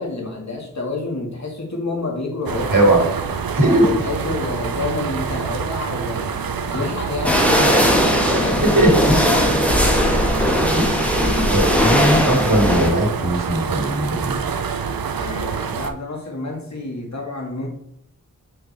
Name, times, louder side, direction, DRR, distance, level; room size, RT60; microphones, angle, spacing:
voice 1, 0.0-3.1 3.5-10.0 15.2-17.7, left 3 dB, 50° left, 0 dB, 1.8 m, -29 dB
sound 1, 2.5-15.9, right 6 dB, 85° right, 0.5 m, -26 dB
voice 2, 2.7-3.0 3.5-3.9 6.7-6.8 8.7-9.2 10.7-14.4, right 1 dB, 65° right, -1 dB, 2.3 m, -19 dB
sound 2, 7.2-12.9, equal, 5° left, 1.2 m, -18 dB
6.2 x 4.8 x 3.4 m, 0.73 s
wide cardioid pair, 40°, 34 cm